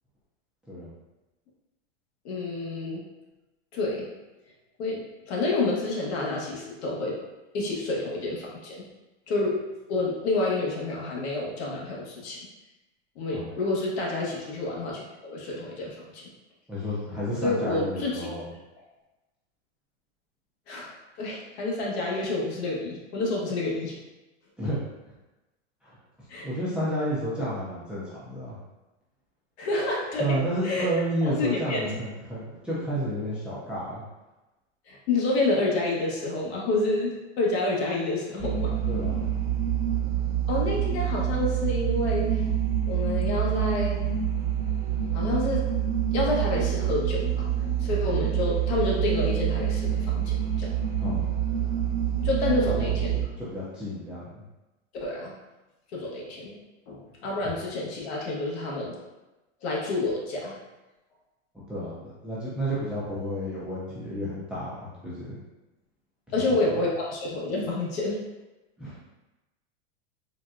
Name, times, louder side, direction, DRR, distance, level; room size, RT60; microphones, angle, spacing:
voice 1, 2.2-3.0 3.7-4.1 4.8-5.0 5.3-7.1 7.5-8.8 9.3-9.5 9.9-12.4 13.2-16.2 17.4-18.3 20.7-20.9 21.2-23.9 26.3-26.5 29.6-30.3 30.6-30.9 31.3-31.9 34.9-38.7 40.5-42.4 42.9-43.9 45.1-45.6 46.1-47.4 47.8-50.7 52.2-53.1 55.0-55.3 55.9-56.5 56.9-58.9 59.6-60.5 66.3-68.2 68.8-68.9, left 2 dB, 60° left, -3 dB, 1.1 m, -28 dB
voice 2, 16.7-18.5 24.6-24.8 25.8-26.0 26.4-28.6 30.2-34.0 38.9-39.2 51.0-51.3 52.6-53.0 53.4-54.3 61.7-65.4 66.3-66.6 68.8-69.0, equal, 5° right, -9 dB, 0.3 m, -31 dB
sound 1, 38.4-53.2, right 9 dB, 60° right, 0.7 m, -26 dB
4.0 x 2.2 x 2.4 m, 1.1 s
supercardioid pair, 130°, 36 cm